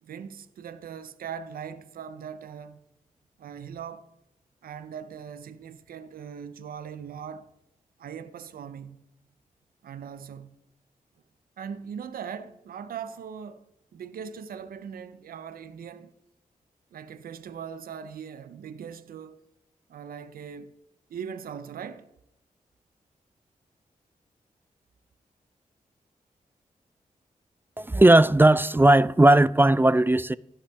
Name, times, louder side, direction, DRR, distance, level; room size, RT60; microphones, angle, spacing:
voice 1, 0.0-2.8 3.4-4.1 4.6-7.5 8.0-9.0 9.8-10.6 11.6-16.1 16.9-19.5 19.9-20.7 21.1-22.1, right 7 dB, 85° right, 0.6 m, -40 dB
voice 2, 27.8-30.4, right 1 dB, 15° right, 0.3 m, -17 dB
16.5 x 5.6 x 3.5 m
cardioid pair, 40°, 15 cm